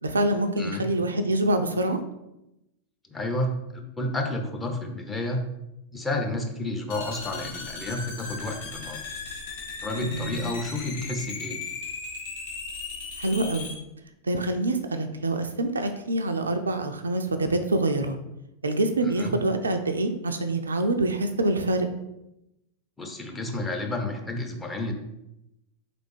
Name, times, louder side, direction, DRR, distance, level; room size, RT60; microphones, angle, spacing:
voice 1, 0.0-2.0 10.0-10.5 13.2-13.7 14.2-18.2 18.6-21.9, right 2 dB, 75° right, 7 dB, 0.3 m, -26 dB
voice 2, 3.1-5.4 5.9-9.0 9.8-11.6 19.0-19.4 23.0-24.9, left 2 dB, 15° left, 2 dB, 0.7 m, -31 dB
sound 1, 6.9-13.8, left 4 dB, 55° left, 0.9 m, -37 dB
3.9 x 3.4 x 3.1 m, 0.87 s
figure-of-eight pair, 90°, 0 cm